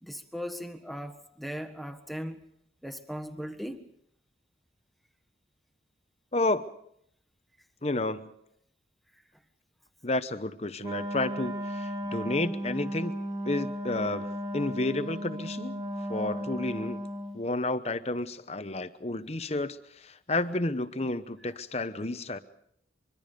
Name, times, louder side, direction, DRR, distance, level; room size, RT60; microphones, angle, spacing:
voice 1, 0.0-2.4 2.8-3.9 9.1-9.2, equal, ahead, 7 dB, 1.4 m, -38 dB
voice 2, 6.3-6.6 7.8-8.3 10.0-13.1 13.4-15.8 16.1-17.0 17.3-22.4, left 2 dB, 35° left, 12 dB, 0.9 m, -31 dB
Wind instrument woodwind instrument, 10.8-17.4, equal, 25° right, 2.7 m, -35 dB
24.5 x 23.5 x 5.3 m, 0.72 s
head